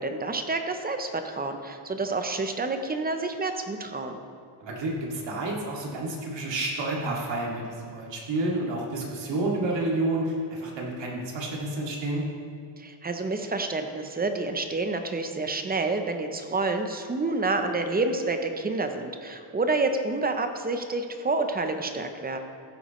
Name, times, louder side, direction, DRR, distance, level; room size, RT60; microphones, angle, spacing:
voice 1, 0.0-4.2 12.8-22.4, right 3 dB, 20° right, 6 dB, 0.6 m, -28 dB
voice 2, 4.6-12.2, right 2 dB, 60° right, -2 dB, 2.2 m, -30 dB
15.0 x 8.4 x 3.1 m, 2.4 s
cardioid pair, 160°, 50 cm